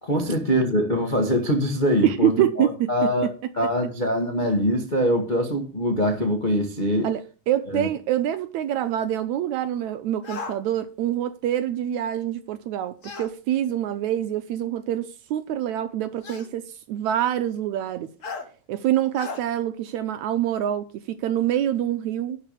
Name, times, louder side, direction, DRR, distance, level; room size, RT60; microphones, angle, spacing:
voice 1, 0.0-3.3 3.6-7.1 7.7-7.9, equal, 35° left, 0.7 m, -23 dB
voice 2, 2.0-3.1 7.0-18.1 18.7-22.4, right 11 dB, 75° right, 1.9 m, -26 dB
sound 1, 10.2-10.6 13.0-13.3 14.6-14.7 16.2-16.5 18.2-18.5 19.1-19.4, left 4 dB, 80° left, 0.7 m, -35 dB
11.5 x 4.8 x 8.3 m
omnidirectional pair, 3.8 m